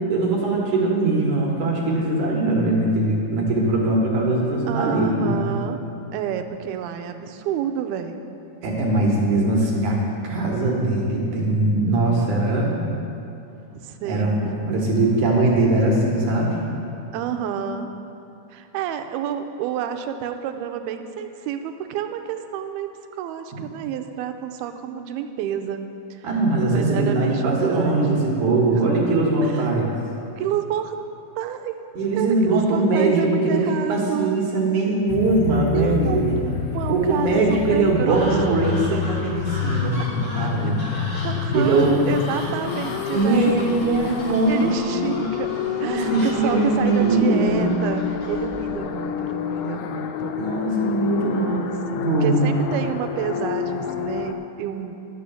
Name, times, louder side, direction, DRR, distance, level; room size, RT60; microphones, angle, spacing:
voice 1, 0.1-5.6 8.6-10.0 10.2-12.8 14.0-16.6 26.2-29.9 31.9-36.2 36.9-40.8 41.5-42.0 43.1-44.7 45.0-45.3 45.8-47.8 50.3-51.6 52.0-52.4, right 2 dB, 60° right, -2 dB, 2.4 m, -21 dB
voice 2, 4.7-5.8 6.1-8.2 13.7-14.4 17.1-17.9 18.5-26.3 26.7-28.0 28.7-28.9 29.4-29.7 30.4-31.0 31.4-31.8 32.2-34.4 35.7-39.6 40.0-40.3 40.9-41.0 41.2-43.5 44.5-45.5 45.8-50.3 51.3-54.9, right 9 dB, 85° right, 7 dB, 2.5 m, -29 dB
sound 1, 35.1-54.3, left 8 dB, 85° left, 2.6 m, -29 dB
sound 2, 38.1-48.8, equal, 25° left, 1.3 m, -38 dB
11.0 x 6.9 x 6.9 m, 2.7 s
omnidirectional pair, 4.4 m